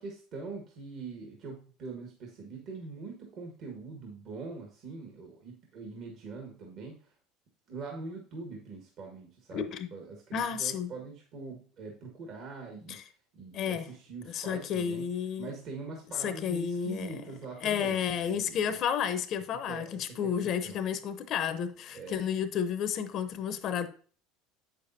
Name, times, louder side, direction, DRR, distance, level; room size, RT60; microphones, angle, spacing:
voice 1, 0.0-7.1 7.7-13.0 13.3-15.1 15.4-18.8 19.7-20.8 21.9-22.2, right 4 dB, 50° right, 1.7 m, -43 dB
voice 2, 9.5-9.9 10.3-10.9 12.9-13.0 13.5-13.9 14.3-15.5 16.2-17.2 17.6-23.9, left 8 dB, 50° left, 0.7 m, -31 dB
8.0 x 6.8 x 2.7 m
supercardioid pair, 105°, 0 cm